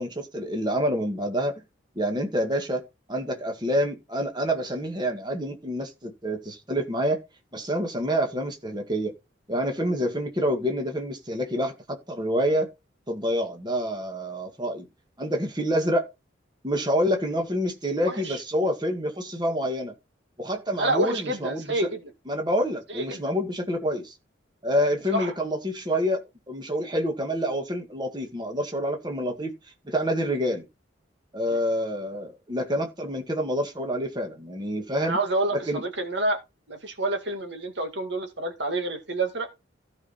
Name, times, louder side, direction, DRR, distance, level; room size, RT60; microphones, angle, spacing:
voice 1, 0.0-1.5 2.0-2.8 3.1-7.2 7.5-9.1 9.5-12.7 13.1-14.9 15.2-16.1 16.6-19.9 20.4-21.9 22.3-24.1 24.6-26.2 26.5-29.5 29.9-30.7 31.3-35.2 35.7-35.8, equal, 20° right, 1.8 m, -27 dB
voice 2, 18.1-18.4 20.8-22.1 22.9-23.2 25.1-25.3 31.5-31.6 35.0-36.4 36.7-39.5, right 2 dB, 65° right, 1.9 m, -28 dB
15.5 x 5.6 x 4.2 m
head